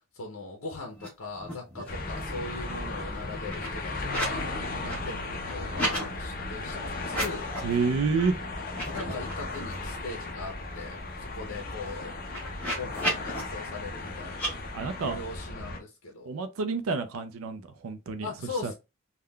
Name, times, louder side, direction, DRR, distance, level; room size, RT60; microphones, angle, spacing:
voice 1, 0.1-5.2 5.5-7.5 8.9-12.1 12.8-14.6 15.0-16.3 18.2-18.7, left 3 dB, 80° left, 0.7 m, -40 dB
sound 1, 0.9-1.1 1.3-2.0 2.3-4.4 4.7-6.0 7.0-7.7 8.1-8.3 8.6-10.0 10.4-10.5 10.7-13.4 14.3-14.5, equal, 10° left, 1.3 m, -35 dB
sound 2, 1.9-15.8, left 2 dB, 45° left, 0.6 m, -36 dB
voice 2, 7.6-8.4 14.7-15.2 16.3-18.3 18.6-18.7, right 4 dB, 85° right, 0.4 m, -29 dB
3.6 x 2.2 x 2.2 m
head